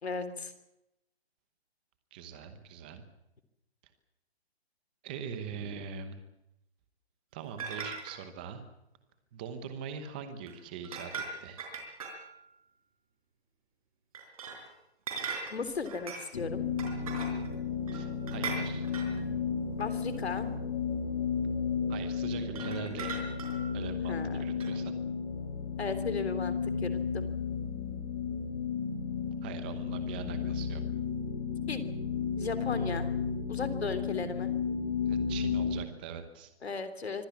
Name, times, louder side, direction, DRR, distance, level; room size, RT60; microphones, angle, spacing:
voice 1, 0.0-0.5 5.5-5.8 15.5-16.6 19.8-20.5 24.1-24.4 25.8-27.3 31.7-31.8 32.4-33.1 33.5-34.5 36.6-37.3, left 4 dB, 75° left, 11 dB, 3.4 m, -36 dB
voice 2, 2.1-3.0 5.0-6.2 7.3-8.6 9.3-11.1 11.4-11.6 17.9-18.9 19.3-19.4 21.9-23.2 23.7-25.0 29.4-30.8 35.1-36.5, right 7 dB, 10° right, 9 dB, 0.9 m, -42 dB
sound 1, 7.6-8.2 10.5-10.6 10.8-12.4 14.1-14.7 15.1-16.3 16.8-17.6 17.9-19.2 20.1-20.2 22.4-23.8 24.6-24.7, right 5 dB, 35° right, 4.9 m, -39 dB
sound 2, 16.3-35.9, left 6 dB, 35° left, 2.2 m, -33 dB
25.0 x 16.5 x 8.4 m, 0.86 s
hypercardioid pair, 170°, 32 cm